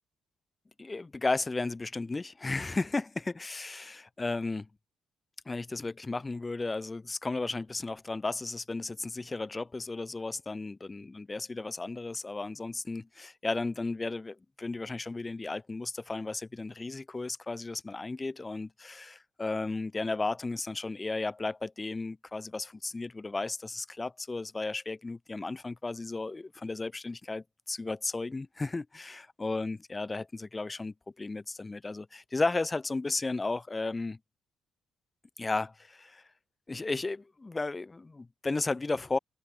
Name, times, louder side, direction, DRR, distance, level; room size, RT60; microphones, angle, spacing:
voice 1, 0.8-4.7 5.4-34.2 35.4-36.2 36.7-39.2, left 3 dB, 20° left, 1.5 m, -34 dB
cardioid pair, 90°, 0 cm